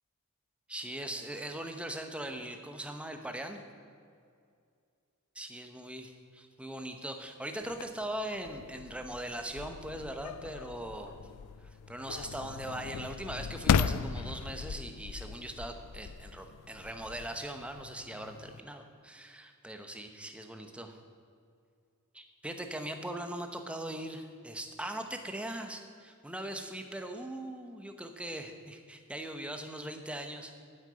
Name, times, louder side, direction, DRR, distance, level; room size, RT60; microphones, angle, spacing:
voice 1, 0.7-3.6 5.4-11.1 11.9-21.0 22.1-30.5, right 1 dB, 5° right, 5 dB, 0.9 m, -40 dB
sound 1, 7.6-18.6, left 6 dB, 90° left, 0.4 m, -36 dB
9.3 x 8.0 x 9.1 m, 2.3 s
head